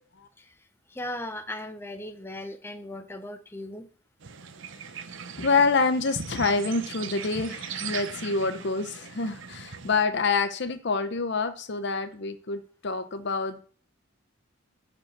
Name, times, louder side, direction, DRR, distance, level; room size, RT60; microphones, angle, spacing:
voice 1, 0.9-3.9 10.1-10.2, left 1 dB, 10° left, 8 dB, 0.6 m, -37 dB
sound 1, 4.2-10.0, right 6 dB, 60° right, 0.8 m, -39 dB
voice 2, 5.4-13.6, left 4 dB, 55° left, 9 dB, 0.7 m, -27 dB
8.9 x 5.2 x 7.2 m, 0.43 s
head